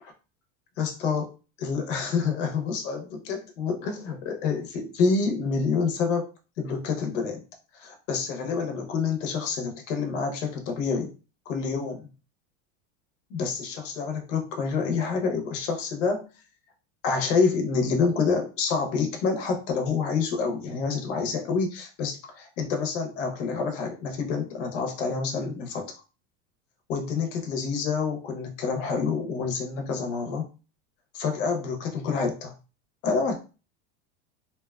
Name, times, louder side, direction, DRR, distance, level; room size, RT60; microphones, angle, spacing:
voice 1, 0.8-1.3 1.6-6.3 6.6-7.4 7.7-11.1 11.5-12.1 13.3-16.3 17.0-25.9 26.9-30.5 31.1-32.5 33.0-33.4, left 5 dB, 80° left, 4 dB, 0.8 m, -27 dB
2.8 x 2.3 x 2.2 m, 0.33 s
supercardioid pair, 120°, 37 cm